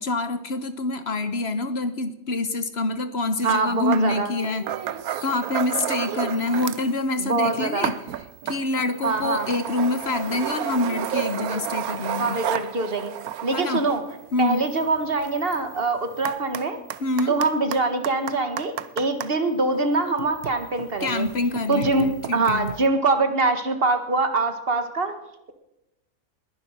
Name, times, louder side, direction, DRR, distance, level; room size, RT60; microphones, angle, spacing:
voice 1, 0.0-4.6 5.2-7.9 8.4-12.4 13.5-13.8 14.3-14.6 17.0-17.4 21.0-22.7, left 2 dB, 50° left, 11 dB, 1.2 m, -26 dB
voice 2, 3.4-4.3 7.2-7.9 9.0-9.5 12.2-13.1 13.4-14.0 14.4-16.8 17.3-21.3 21.7-22.1 22.3-25.1, right 3 dB, 40° right, 8 dB, 1.7 m, -24 dB
sound 1, 3.5-3.6 3.9-6.9 7.3-19.3 20.1-22.9, right 10 dB, 85° right, 1.2 m, -32 dB
20.5 x 11.0 x 6.5 m, 0.92 s
omnidirectional pair, 1.5 m